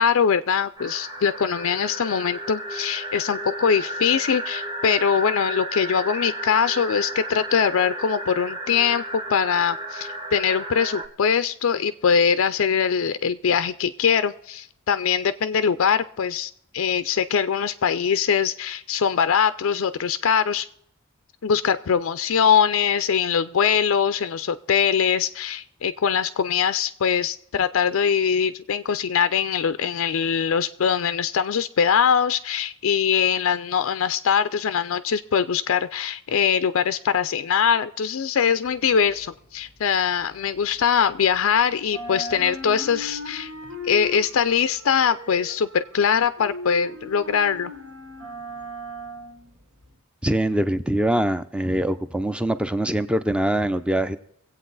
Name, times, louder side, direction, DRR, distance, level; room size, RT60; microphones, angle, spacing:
voice 1, 0.0-20.7 21.4-43.5 43.8-47.7, left 7 dB, 70° left, 12 dB, 0.4 m, -22 dB
sound 1, 0.8-11.1, right 1 dB, 20° right, 1.1 m, -33 dB
sound 2, 38.7-41.5 41.8-50.0, left 1 dB, 65° right, 2.3 m, -38 dB
voice 2, 50.2-54.2, right 1 dB, 5° right, 12 dB, 0.5 m, -23 dB
23.5 x 8.3 x 3.9 m, 0.72 s
head